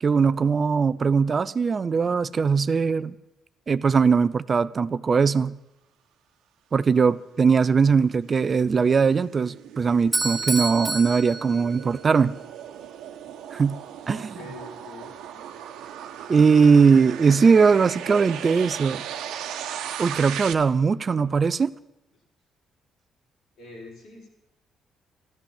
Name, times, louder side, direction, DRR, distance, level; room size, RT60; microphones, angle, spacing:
voice 1, 0.0-3.2 3.7-5.6 6.7-12.3 13.5-13.8 14.1-14.3 16.3-19.0 20.0-21.7, right 5 dB, 40° right, 0.6 m, -20 dB
sound 1, 7.3-20.5, right 9 dB, 90° right, 1.2 m, -38 dB
Bell / Doorbell, 10.1-12.2, right 2 dB, 5° right, 2.5 m, -29 dB
voice 2, 14.1-15.4 23.6-24.3, left 2 dB, 80° left, 6.1 m, -44 dB
13.5 x 13.0 x 7.2 m
cardioid pair, 90°, 0 cm